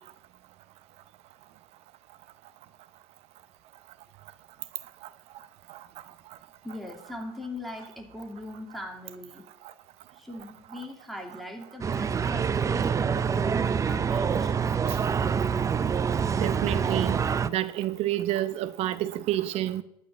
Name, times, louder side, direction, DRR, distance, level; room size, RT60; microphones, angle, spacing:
voice 1, 6.6-9.5 10.1-14.5, left 1 dB, ahead, 2.7 m, -40 dB
sound 1, 11.8-17.5, right 6 dB, 25° right, 0.6 m, -26 dB
voice 2, 16.4-19.8, right 13 dB, 60° right, 0.8 m, -29 dB
12.0 x 5.7 x 8.6 m
hypercardioid pair, 90°, 12 cm